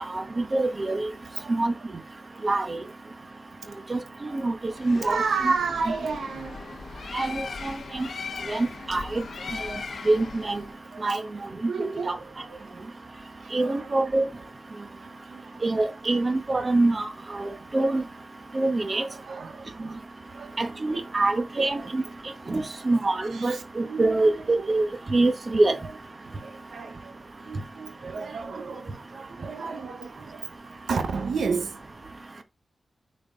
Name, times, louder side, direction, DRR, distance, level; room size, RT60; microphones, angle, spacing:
voice 1, 0.5-1.1 1.5-1.7 2.4-2.8 3.9-4.5 4.8-5.2 5.4-5.5 7.1-8.1 8.5-9.2 10.1-10.6 11.0-11.2 11.8-12.1 13.5-14.3 15.6-17.1 17.3-18.0 18.5-19.0 20.6-22.0 22.5-24.3 24.7-25.8, right 2 dB, 35° right, 1.2 m, -25 dB
voice 2, 4.3-7.1 7.4-7.5 8.5-8.6 10.9-11.1 11.7-12.8 13.4-13.9 14.9-15.6 18.9-19.9 20.3-21.0 21.8-21.9 23.3-24.7 25.6-25.8 26.4-31.8 32.3-32.4, right 5 dB, 85° right, 1.0 m, -33 dB
Bird, 4.7-10.7, left 5 dB, 65° left, 0.7 m, -38 dB
6.1 x 4.5 x 3.7 m
wide cardioid pair, 100°, 0 cm